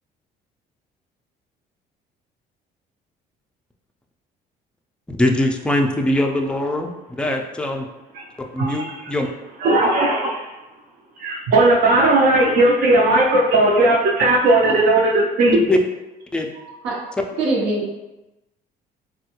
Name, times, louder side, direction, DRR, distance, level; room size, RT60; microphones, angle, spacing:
voice 1, 5.2-7.9 8.5-9.3 15.5-15.8 16.3-16.5, left 1 dB, 5° left, 2 dB, 0.3 m, -21 dB
voice 2, 8.6-9.1 9.6-10.5 11.2-15.6, right 2 dB, 60° right, -3 dB, 0.5 m, -17 dB
voice 3, 17.4-18.0, right 2 dB, 90° right, -5 dB, 0.8 m, -23 dB
3.2 x 2.2 x 2.9 m, 0.96 s
cardioid pair, 110°, 17 cm